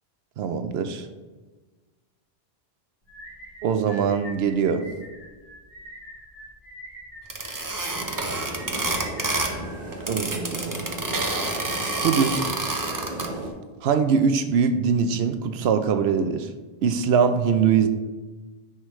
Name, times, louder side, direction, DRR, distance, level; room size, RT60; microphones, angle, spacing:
voice 1, 0.4-1.1 3.6-4.8 10.1-10.8 12.0-12.6 13.8-16.5 16.8-17.9, right 6 dB, 80° right, 9 dB, 0.9 m, -22 dB
sound 1, 3.1-10.4, right 1 dB, 80° left, 2.4 m, -44 dB
sound 2, 7.3-9.6 9.9-13.3, right 2 dB, 25° right, 0.6 m, -28 dB
sound 3, 7.9-13.5, right 1 dB, 50° right, 1.7 m, -35 dB
9.7 x 4.8 x 3.1 m, 1.3 s
omnidirectional pair, 1.0 m